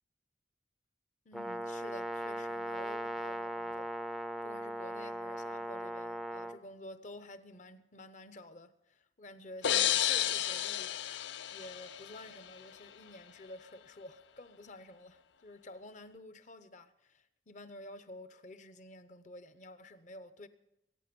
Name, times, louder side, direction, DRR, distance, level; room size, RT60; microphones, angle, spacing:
voice 1, 1.2-20.5, left 1 dB, 45° left, 0.9 m, -51 dB
Brass instrument, 1.3-6.6, right 1 dB, ahead, 0.5 m, -39 dB
sound 1, 9.6-12.4, left 11 dB, 85° left, 0.5 m, -32 dB
22.5 x 9.3 x 5.3 m
head